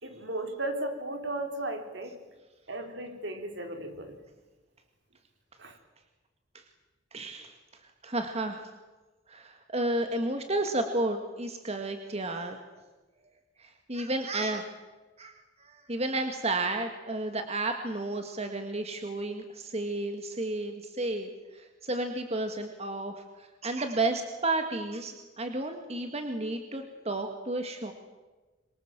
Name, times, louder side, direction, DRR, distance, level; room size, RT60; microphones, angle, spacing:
voice 1, 0.0-2.2 2.7-4.2 5.6-5.8, right 1 dB, 65° right, 5 dB, 3.6 m, -35 dB
voice 2, 7.1-7.5 8.0-8.7 9.3-12.6 13.6-14.7 15.2-15.3 15.6-27.9, right 2 dB, 35° right, 6 dB, 1.9 m, -32 dB
26.5 x 23.5 x 7.5 m, 1.2 s
head